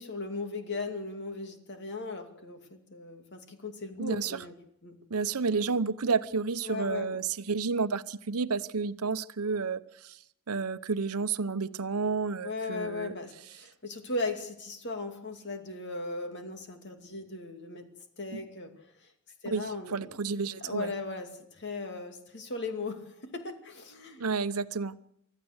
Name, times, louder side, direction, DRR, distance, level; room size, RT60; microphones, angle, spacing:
voice 1, 0.0-4.5 4.8-5.0 6.6-7.2 12.4-17.9 18.2-18.7 19.4-20.1 20.6-24.2, left 3 dB, 50° left, 6 dB, 2.6 m, -37 dB
voice 2, 4.0-4.4 5.1-10.2 10.5-13.1 18.3-18.4 19.5-20.9 24.2-25.0, right 4 dB, 85° right, 14 dB, 0.8 m, -31 dB
25.0 x 14.5 x 8.0 m, 0.75 s
head